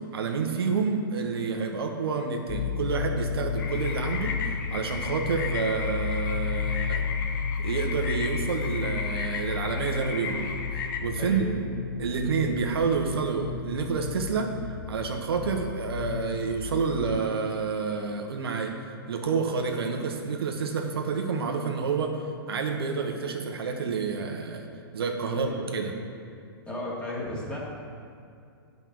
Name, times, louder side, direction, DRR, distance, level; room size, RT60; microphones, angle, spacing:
voice 1, 0.1-7.1 7.6-11.6 12.0-14.5 14.9-18.7 19.1-22.1 22.5-24.7 24.9-25.9, right 5 dB, 80° right, 3 dB, 1.1 m, -29 dB
sound 1, 2.5-17.2, left 7 dB, 30° left, 0.3 m, -33 dB
sound 2, 3.6-11.0, left 5 dB, 55° left, 0.9 m, -35 dB
voice 2, 25.3-25.8 26.7-27.6, left 1 dB, 10° left, -6 dB, 2.2 m, -34 dB
9.1 x 5.4 x 6.1 m, 2.4 s
hypercardioid pair, 140°, 13 cm